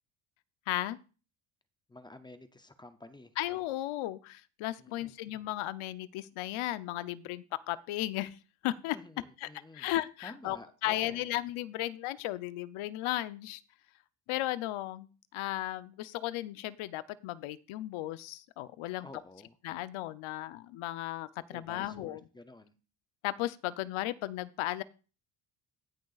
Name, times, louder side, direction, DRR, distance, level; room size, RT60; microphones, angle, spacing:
voice 1, 0.7-1.0 3.4-8.4 8.6-9.0 9.4-9.5 9.7-13.6 14.3-15.1 15.3-19.1 19.6-22.2 23.2-24.8, left 15 dB, 85° left, 16 dB, 0.7 m, -35 dB
voice 2, 1.9-3.3 4.8-5.1 8.9-9.9 10.2-11.3 19.0-19.6 21.5-22.7, left 2 dB, 10° left, 10 dB, 0.4 m, -50 dB
17.5 x 6.4 x 2.4 m, 0.35 s
cardioid pair, 165°, 48 cm